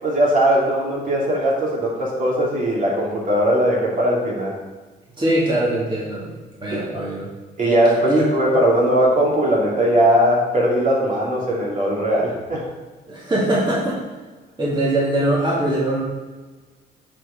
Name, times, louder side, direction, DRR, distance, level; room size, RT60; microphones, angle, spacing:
voice 1, 0.0-4.5 6.7-7.0 7.6-12.6, equal, 40° right, -4 dB, 2.6 m, -19 dB
voice 2, 5.2-6.3 6.6-7.3 8.0-8.3 13.1-14.0 14.6-16.0, right 1 dB, 25° right, -7 dB, 2.6 m, -21 dB
Mallet percussion, 7.7-9.7, equal, 70° right, 1.5 m, -30 dB
8.8 x 4.5 x 5.1 m, 1.3 s
cardioid pair, 90°, 20 cm